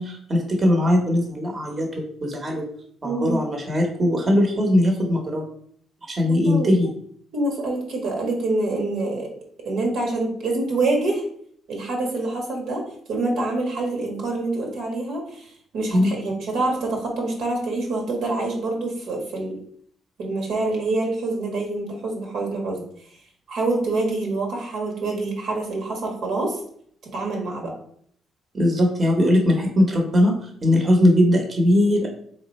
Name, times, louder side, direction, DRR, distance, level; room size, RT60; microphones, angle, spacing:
voice 1, 0.0-2.6 3.0-5.5 6.1-6.9 15.9-16.2 28.5-32.1, left 1 dB, 30° right, 1 dB, 1.0 m, -20 dB
voice 2, 3.0-3.4 6.3-6.7 7.3-9.3 9.6-11.2 11.7-12.8 13.1-19.6 20.2-22.8 23.5-26.6 27.1-27.7, right 2 dB, 75° right, 1 dB, 1.3 m, -26 dB
3.6 x 3.1 x 4.1 m, 0.62 s
cardioid pair, 110°, 0 cm